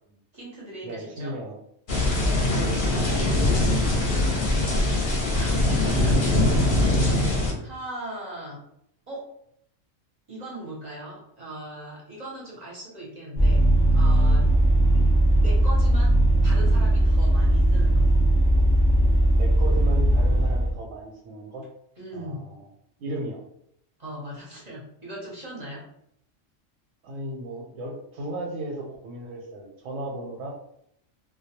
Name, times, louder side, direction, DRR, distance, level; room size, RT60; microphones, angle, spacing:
voice 1, 0.3-1.4 4.5-5.0 5.3-8.6 9.1-9.3 10.3-14.6 14.9-16.2 16.4-18.0 22.0-22.4 24.0-25.8, right 1 dB, 40° right, -4 dB, 0.6 m, -39 dB
voice 2, 0.8-1.6 2.2-4.2 19.3-21.6 22.1-22.7 23.0-23.4 27.0-30.5, right 1 dB, 90° right, -1 dB, 1.0 m, -35 dB
sound 1, 1.9-7.5, left 1 dB, 55° left, 0.6 m, -22 dB
Vehicle, 13.4-20.7, right 1 dB, 5° left, 0.8 m, -19 dB
2.2 x 2.2 x 2.8 m, 0.73 s
omnidirectional pair, 1.3 m